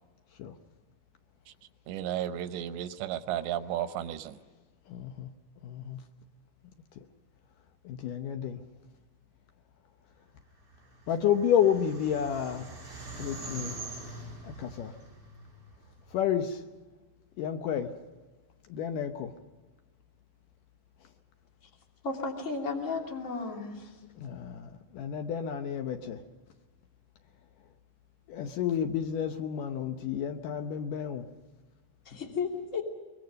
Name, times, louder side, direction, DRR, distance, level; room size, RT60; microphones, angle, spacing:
voice 1, 1.9-4.4, right 11 dB, 90° right, 11 dB, 3.2 m, -33 dB
voice 2, 4.9-5.3 5.6-6.0 7.9-8.6 11.1-12.7 13.2-13.8 14.4-14.9 16.1-16.6 17.4-17.9 18.7-19.3 24.2-26.2 28.3-31.3, left 9 dB, 75° left, 6 dB, 2.0 m, -30 dB
sound 1, 10.7-16.2, right 2 dB, 25° right, 8.6 m, -44 dB
voice 3, 22.0-23.9 32.0-32.8, left 4 dB, 20° left, 1 dB, 2.5 m, -34 dB
24.0 x 22.5 x 5.3 m, 1.3 s
omnidirectional pair, 5.0 m